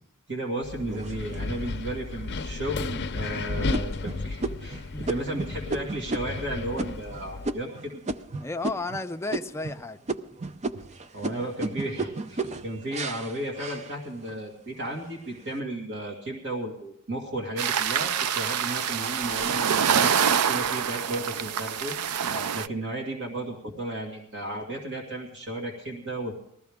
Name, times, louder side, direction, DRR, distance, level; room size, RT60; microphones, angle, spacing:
voice 1, 0.3-8.0 11.1-21.9 22.2-26.3, right 1 dB, 55° right, 0 dB, 2.3 m, -34 dB
Wind, 0.6-7.5, left 3 dB, 50° left, 0.6 m, -34 dB
sound 1, 0.9-1.7 2.3-2.4 2.9-3.2 3.7-9.0 9.3-9.8 10.1-14.4 14.9-15.4, right 2 dB, 30° right, 0.6 m, -34 dB
voice 2, 4.9-5.4 8.4-10.0 22.2-22.5, left 2 dB, 10° left, 7 dB, 0.5 m, -34 dB
sound 2, 17.6-22.7, right 8 dB, 90° right, 0.5 m, -26 dB
19.5 x 14.0 x 3.6 m, 0.72 s
head